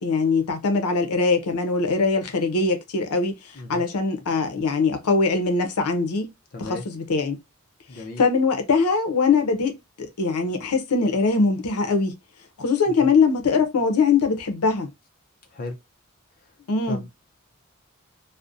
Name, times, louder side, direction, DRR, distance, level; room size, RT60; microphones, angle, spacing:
voice 1, 0.0-3.3 3.7-6.3 6.6-7.4 8.2-12.1 12.6-14.9 16.7-17.0, left 4 dB, 85° left, 0.6 m, -22 dB
voice 2, 6.5-6.8 7.9-8.2 12.9-13.1 15.5-15.8 16.9-17.1, left 2 dB, 40° left, 0.5 m, -34 dB
2.5 x 2.1 x 2.4 m
head